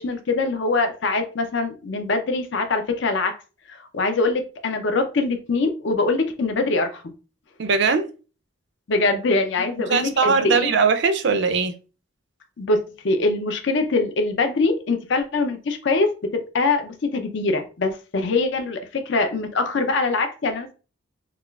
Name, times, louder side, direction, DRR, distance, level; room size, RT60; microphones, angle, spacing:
voice 1, 0.0-3.3 3.7-7.0 8.9-10.7 12.6-12.8 13.0-20.7, left 3 dB, 60° left, 0.5 m, -23 dB
voice 2, 7.6-8.1 9.9-11.7, right 5 dB, 55° right, 0.5 m, -20 dB
4.8 x 2.4 x 2.3 m
head